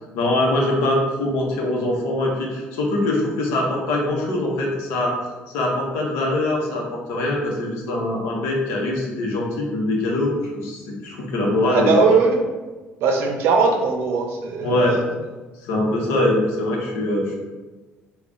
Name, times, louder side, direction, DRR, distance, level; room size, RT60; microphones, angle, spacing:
voice 1, 0.1-5.1 5.5-11.9 14.6-15.0 15.6-17.3, left 1 dB, 90° left, -1 dB, 0.8 m, -23 dB
voice 2, 11.6-12.4 13.0-15.0, right 4 dB, 75° right, 2 dB, 0.6 m, -19 dB
3.4 x 2.3 x 3.8 m, 1.3 s
cardioid pair, 90°, 4 cm